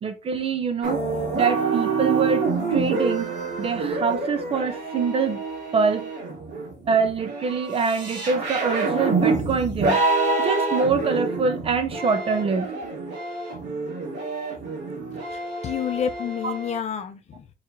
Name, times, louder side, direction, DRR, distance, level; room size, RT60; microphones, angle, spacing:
voice 1, 0.0-1.0 1.3-2.4 2.7-5.4 5.7-6.1 6.9-10.0 10.4-12.7, right 5 dB, 35° right, 0.6 m, -24 dB
sound 1, 0.8-16.8, right 3 dB, 75° right, 2.1 m, -27 dB
voice 2, 15.3-17.5, left 8 dB, 40° left, 0.6 m, -29 dB
4.7 x 4.0 x 2.7 m
cardioid pair, 165°, 18 cm